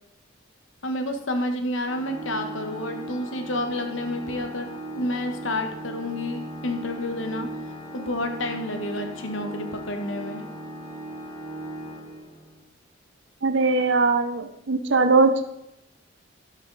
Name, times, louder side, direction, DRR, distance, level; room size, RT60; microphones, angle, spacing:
voice 1, 0.8-4.7 4.9-7.5 7.9-10.4, left 1 dB, 80° left, 5 dB, 1.5 m, -29 dB
Organ, 1.8-12.7, right 1 dB, 20° left, 1.6 m, -38 dB
voice 2, 13.4-15.4, right 3 dB, 65° right, 7 dB, 1.0 m, -20 dB
12.0 x 8.0 x 4.0 m, 0.82 s
head